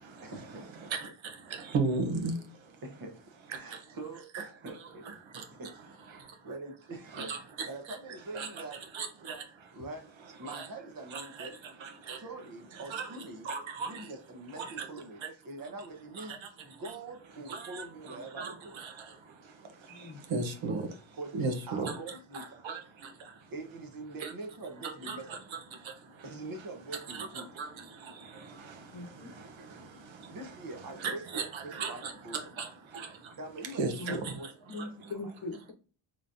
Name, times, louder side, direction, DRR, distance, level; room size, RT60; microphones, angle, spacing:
voice 1, 0.2-0.9 2.8-5.0 5.6-6.1 6.4-7.4 7.6-8.8 9.7-11.6 12.1-13.5 13.9-18.8 21.2-22.6 23.5-25.4 26.2-27.5 30.2-32.5 33.4-34.5 35.0-35.3, right 2 dB, 45° right, 1.0 m, -44 dB
voice 2, 1.7-2.3 4.3-4.4 7.1-7.4 8.3-8.5 8.9-9.4 10.5-10.7 11.1-11.5 11.8-12.2 12.9-13.1 13.4-13.9 17.5-17.8 18.4-18.5 18.8-18.9 20.3-20.8 21.3-22.0 22.6-22.8 24.2-24.3 24.8-25.4 27.1-27.3 27.6-27.7 31.0-32.1 32.6-32.7 32.9-33.1 33.8-34.3, right 4 dB, 75° right, 1.0 m, -34 dB
voice 3, 19.9-20.2 28.9-29.3 33.9-34.3 34.7-35.7, left 2 dB, 45° left, 0.9 m, -40 dB
3.8 x 3.1 x 2.6 m
wide cardioid pair, 170°, 47 cm